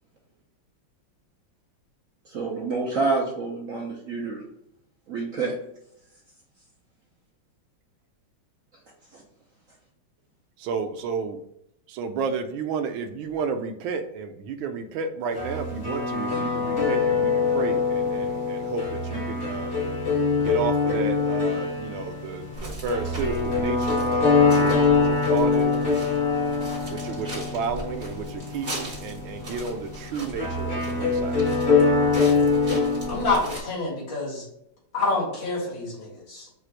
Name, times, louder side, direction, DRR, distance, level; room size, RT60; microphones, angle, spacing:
voice 1, 2.2-4.4 5.1-5.5 9.1-9.2, right 3 dB, 60° right, -2 dB, 0.9 m, -28 dB
voice 2, 10.6-11.4 11.9-19.8 20.4-25.8 26.9-31.4, right 5 dB, 90° right, 7 dB, 1.4 m, -32 dB
sound 1, 15.4-33.4, left 4 dB, 55° left, 1.8 m, -24 dB
sound 2, 22.5-33.6, right 1 dB, 25° right, 1.4 m, -39 dB
voice 3, 33.1-34.5 34.9-36.5, left 3 dB, 75° left, -5 dB, 2.6 m, -27 dB
4.7 x 2.5 x 4.5 m, 0.80 s
omnidirectional pair, 2.1 m